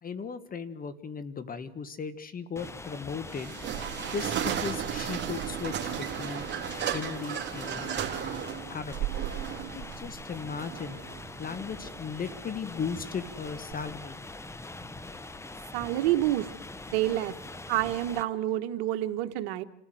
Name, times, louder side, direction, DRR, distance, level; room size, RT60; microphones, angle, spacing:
voice 1, 0.0-3.5 4.1-6.5 6.9-9.1 9.7-11.0 11.4-14.2, left 5 dB, 25° left, 12 dB, 1.4 m, -37 dB
sound 1, 2.6-18.2, left 2 dB, 10° left, 1.0 m, -43 dB
sound 2, 3.3-13.7, right 9 dB, 35° right, 3.2 m, -35 dB
voice 2, 15.7-16.5 16.9-17.3 17.7-19.6, right 14 dB, 70° right, 8 dB, 1.6 m, -28 dB
28.5 x 14.5 x 7.8 m, 0.91 s
supercardioid pair, 100°, 31 cm